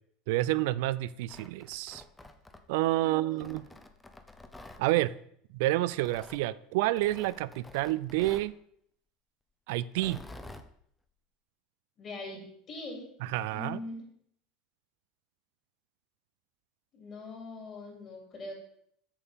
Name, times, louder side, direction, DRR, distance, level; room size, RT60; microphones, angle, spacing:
voice 1, 0.3-2.0 2.7-3.7 4.8-5.1 5.5-8.5 9.7-10.2 13.2-13.8, right 16 dB, 75° right, 17 dB, 0.3 m, -29 dB
Tearing, 1.1-2.9 3.4-4.8 5.9-6.4 7.0-8.5 9.8-10.7, left 2 dB, 10° left, 0.7 m, -49 dB
voice 2, 3.0-3.6 12.0-13.0 13.5-14.0 16.9-18.5, left 2 dB, 35° left, 1 dB, 3.2 m, -42 dB
7.0 x 6.9 x 5.3 m, 0.68 s
supercardioid pair, 135°, 0 cm